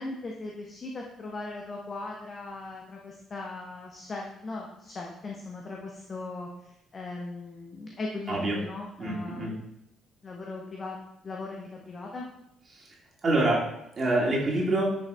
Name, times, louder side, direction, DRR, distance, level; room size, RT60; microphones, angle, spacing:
voice 1, 0.0-9.6 10.2-11.0 11.2-12.3, left 3 dB, 35° left, -1 dB, 1.0 m, -39 dB
voice 2, 9.0-9.5 12.7-12.9 13.2-13.6 14.0-14.8, right 2 dB, 35° right, -5 dB, 2.3 m, -26 dB
10.0 x 6.5 x 2.3 m, 0.81 s
figure-of-eight pair, 45°, 0 cm